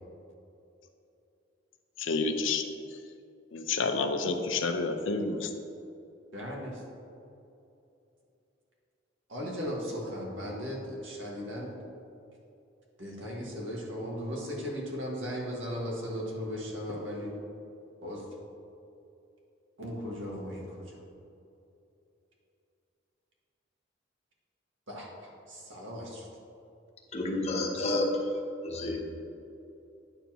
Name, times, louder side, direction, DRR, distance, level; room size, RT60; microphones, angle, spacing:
voice 1, 2.0-2.6 3.5-5.5, left 4 dB, 90° left, 6 dB, 0.7 m, -29 dB
voice 2, 6.3-6.7 9.3-11.7 13.0-17.3 18.0-18.2 19.8-20.7 24.9-25.1 25.5-26.2, equal, 85° right, -3 dB, 1.9 m, -37 dB
voice 3, 27.1-28.3 28.6-29.0, left 2 dB, 35° left, 0 dB, 1.0 m, -30 dB
9.9 x 7.0 x 3.0 m, 2.8 s
head